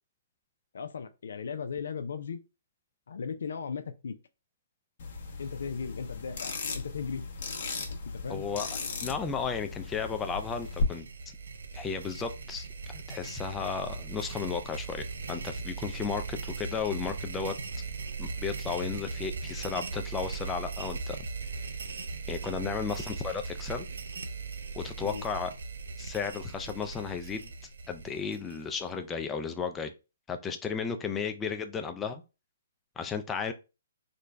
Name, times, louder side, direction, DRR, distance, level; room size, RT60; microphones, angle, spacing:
voice 1, 0.7-2.4 3.1-4.1 5.4-7.3 8.1-8.5 25.0-25.3, left 6 dB, 75° left, 0.4 m, -37 dB
wind up music box, 5.0-10.8, left 5 dB, 50° left, 0.9 m, -37 dB
voice 2, 8.3-11.1 11.7-17.5 18.2-21.2 22.3-23.9 24.7-25.5 26.0-27.5 27.9-29.9 30.3-32.2 33.0-33.5, left 6 dB, 10° left, 0.4 m, -34 dB
sound 1, 9.9-28.9, right 4 dB, 85° right, 0.5 m, -39 dB
3.8 x 2.2 x 3.1 m
hypercardioid pair, 160°, 0 cm